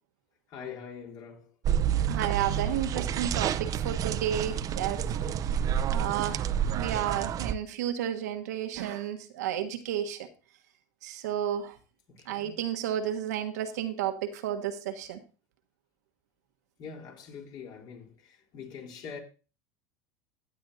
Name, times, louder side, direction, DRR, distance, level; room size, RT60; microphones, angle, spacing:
voice 1, 0.5-1.5 5.0-5.5 12.1-12.6 16.8-19.2, left 6 dB, 55° left, 3.9 m, -44 dB
sound 1, 1.6-7.5, right 9 dB, 40° right, 0.7 m, -29 dB
voice 2, 2.1-5.1 5.9-10.3 11.0-11.8 12.3-15.2, right 10 dB, 85° right, 1.3 m, -32 dB
15.0 x 9.2 x 2.8 m
supercardioid pair, 100°, 9 cm